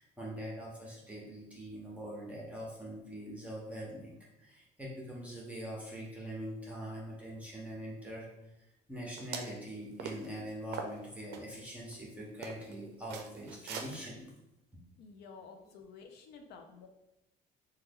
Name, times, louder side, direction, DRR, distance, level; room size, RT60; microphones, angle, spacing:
voice 1, 0.0-4.1 4.4-14.3, equal, 10° right, -4 dB, 0.7 m, -43 dB
sound 1, 9.2-9.6 10.0-10.3 10.7-11.4 11.9-12.0 12.4-12.7 13.1-13.9, right 6 dB, 90° right, 0.4 m, -41 dB
voice 2, 15.0-16.9, left 5 dB, 75° left, 4 dB, 0.4 m, -52 dB
3.0 x 2.2 x 3.5 m, 0.89 s
cardioid pair, 110°, 17 cm